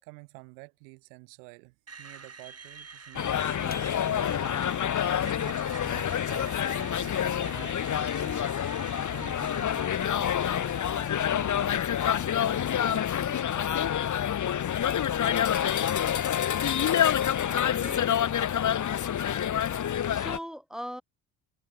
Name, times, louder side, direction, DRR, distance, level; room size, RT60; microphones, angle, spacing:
voice 1, 0.0-4.7 5.2-8.4 8.8-14.0, right 38 dB, 90° right, 4.8 m, -50 dB
Screech, 1.9-15.8, right 5 dB, 35° right, 6.8 m, -48 dB
sound 1, 3.1-20.4, left 9 dB, 40° left, 1.1 m, -27 dB
sound 2, 3.7-4.8, left 3 dB, 20° left, 5.8 m, -46 dB
voice 2, 17.5-18.6 19.6-21.0, equal, ahead, 2.6 m, -42 dB
supercardioid pair, 70°, 45 cm